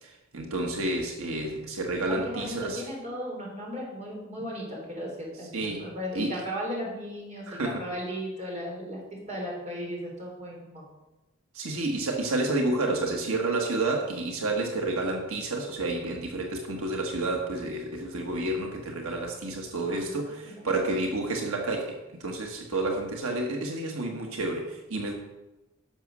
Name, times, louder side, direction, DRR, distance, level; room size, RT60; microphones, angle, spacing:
voice 1, 0.0-2.8 5.5-5.8 6.1-6.3 7.5-7.8 11.5-25.1, right 2 dB, 85° right, 1 dB, 1.5 m, -30 dB
voice 2, 2.1-5.1 5.4-9.0 9.3-10.8 19.9-20.1 20.4-20.5, equal, 30° right, -3 dB, 3.6 m, -36 dB
11.5 x 6.4 x 6.1 m, 1.0 s
head